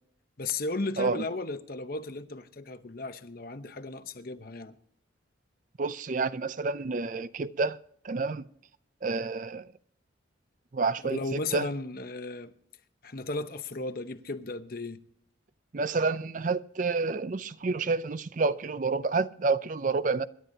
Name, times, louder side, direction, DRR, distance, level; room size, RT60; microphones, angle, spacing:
voice 1, 0.4-4.8 11.0-12.5 13.0-15.0, left 3 dB, 50° left, 0.9 m, -35 dB
voice 2, 5.8-7.8 8.0-8.5 9.0-9.7 10.7-11.7 15.7-20.3, right 4 dB, 40° right, 0.5 m, -29 dB
26.0 x 11.5 x 2.8 m
head